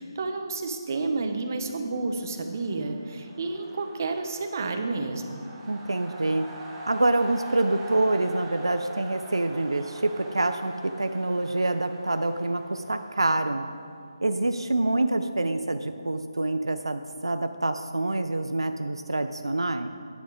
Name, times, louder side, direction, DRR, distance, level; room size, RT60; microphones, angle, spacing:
voice 1, 0.0-5.4, right 3 dB, 40° right, 5 dB, 1.1 m, -30 dB
sound 1, 2.0-14.0, right 1 dB, 10° right, 1.3 m, -44 dB
voice 2, 5.7-6.5 6.9-13.7 14.2-19.9, right 2 dB, 85° right, 8 dB, 0.6 m, -26 dB
10.5 x 9.4 x 5.0 m, 2.3 s
figure-of-eight pair, 155°, 3 cm